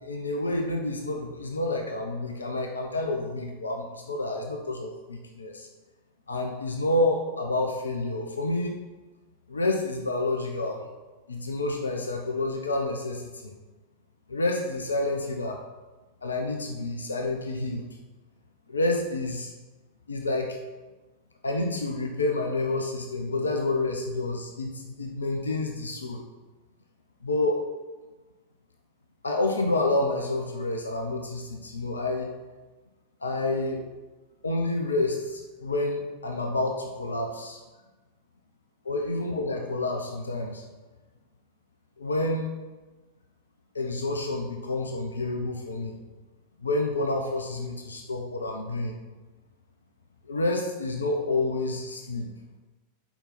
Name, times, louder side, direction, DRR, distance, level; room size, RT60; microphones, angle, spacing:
voice 1, 0.0-5.7 6.3-8.8 9.5-10.8 11.3-13.5 14.3-15.6 16.2-17.9 18.7-19.5 20.1-20.6 21.4-26.2 27.2-27.6 29.2-32.3 33.2-33.8 34.4-37.6 38.9-40.6 42.0-42.5 43.7-46.0 46.6-49.0 50.3-52.3, left 2 dB, 75° left, 3 dB, 0.9 m, -29 dB
6.9 x 5.3 x 5.9 m, 1.2 s
figure-of-eight pair, 90°, 0 cm